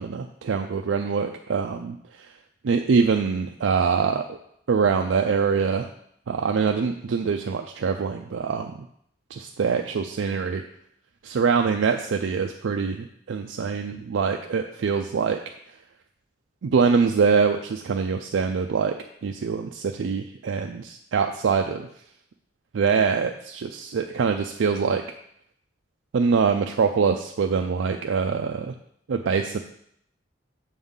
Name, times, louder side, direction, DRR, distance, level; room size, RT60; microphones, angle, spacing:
voice 1, 0.0-2.3 2.7-4.4 4.7-5.9 6.3-8.9 9.3-10.6 11.2-15.4 16.6-18.9 19.2-21.9 22.7-25.0 26.1-28.7 29.1-29.6, right 5 dB, 90° right, 4 dB, 0.4 m, -24 dB
6.9 x 3.7 x 5.5 m, 0.71 s
head